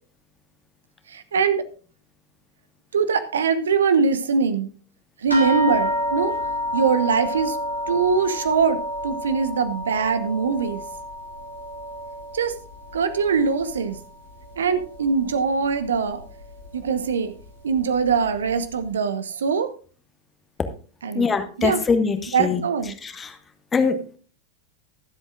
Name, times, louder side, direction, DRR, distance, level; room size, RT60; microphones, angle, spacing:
voice 1, 1.1-1.6 2.9-4.7 5.2-6.3 6.7-7.6 7.9-8.8 9.0-10.8 12.3-12.6 12.9-14.0 14.6-16.2 16.7-17.3 17.6-19.7 21.0-21.3 21.6-21.8 22.3-23.0, right 5 dB, 65° right, 11 dB, 1.0 m, -22 dB
sound 1, 5.3-14.1 14.4-15.3 16.1-16.2 16.6-16.7, left 1 dB, 90° right, 3.4 m, -30 dB
voice 2, 21.2-22.6 23.7-24.2, left 5 dB, 20° left, 8 dB, 1.4 m, -22 dB
24.0 x 8.0 x 2.5 m, 0.38 s
figure-of-eight pair, 90°, 0 cm